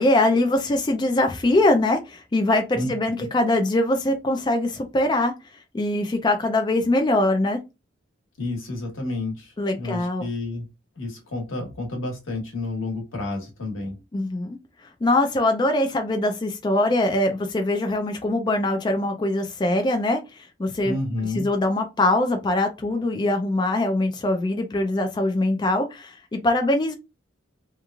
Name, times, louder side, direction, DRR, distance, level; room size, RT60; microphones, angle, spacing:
voice 1, 0.0-5.3 5.7-7.6 9.6-10.2 14.1-14.6 14.8-20.9 21.4-26.9, left 1 dB, 25° left, 0.4 m, -22 dB
voice 2, 8.4-10.7 11.0-14.0 20.8-21.5, left 2 dB, 90° left, 1.2 m, -30 dB
3.0 x 2.4 x 2.3 m
head